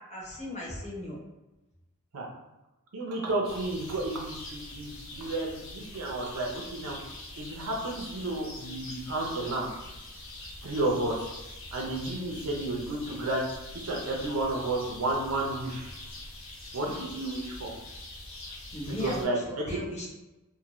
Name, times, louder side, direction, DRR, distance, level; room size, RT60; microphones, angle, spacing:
voice 1, 0.1-1.2 12.1-12.3 16.9-17.0 18.7-20.1, left 1 dB, 30° left, -5 dB, 0.9 m, -37 dB
voice 2, 2.9-7.0 7.4-9.7 10.6-11.2 11.7-13.5 13.7-15.9 16.7-17.7 18.9-19.8, right 2 dB, 80° right, -1 dB, 0.6 m, -32 dB
sound 1, 3.4-19.3, left 2 dB, 65° left, 0.9 m, -44 dB
2.6 x 2.5 x 2.9 m, 1.0 s
head